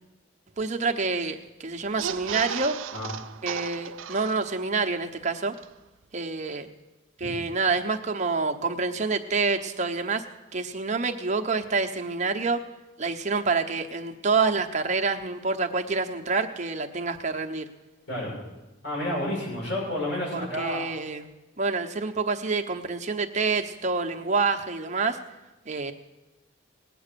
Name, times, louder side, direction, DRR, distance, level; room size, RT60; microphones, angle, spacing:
voice 1, 0.6-2.8 3.4-5.5 6.1-6.7 7.2-10.2 10.5-12.6 13.0-17.7 20.3-21.2 21.6-25.2 25.7-25.9, right 4 dB, 35° right, 4 dB, 1.0 m, -27 dB
sound 1, 1.9-4.8 5.2-5.3 5.5-5.7, right 8 dB, 80° right, 0.5 m, -35 dB
voice 2, 18.8-20.8, left 1 dB, 75° left, -4 dB, 7.2 m, -30 dB
19.0 x 9.1 x 6.9 m, 1.0 s
head